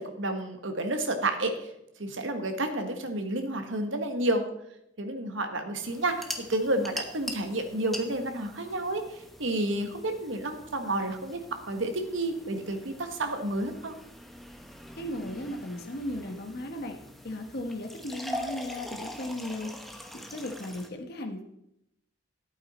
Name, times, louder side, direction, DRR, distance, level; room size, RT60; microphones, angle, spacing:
voice 1, 0.0-1.7 2.0-4.4 5.0-11.4 11.7-13.9, right 1 dB, 85° right, 7 dB, 1.3 m, -30 dB
sound 1, 5.8-20.9, equal, ahead, 1.0 m, -43 dB
voice 2, 15.0-17.0 17.2-21.4, left 1 dB, 55° left, 4 dB, 1.1 m, -36 dB
11.5 x 8.8 x 4.2 m, 0.82 s
head